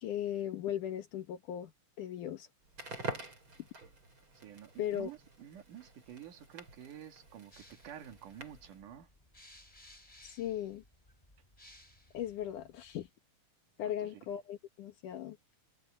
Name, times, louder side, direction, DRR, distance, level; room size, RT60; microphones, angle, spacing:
voice 1, 0.0-1.7 2.0-2.5 4.8-5.1 10.2-10.8 12.1-13.1 13.8-15.4, left 11 dB, 80° left, 2.9 m, -37 dB
Crackle, 2.6-8.8, right 2 dB, 40° right, 6.5 m, -47 dB
voice 2, 4.4-9.1 13.8-14.3, right 10 dB, 80° right, 3.5 m, -50 dB
sound 1, 7.5-13.1, left 1 dB, 10° left, 6.2 m, -60 dB
omnidirectional pair, 3.6 m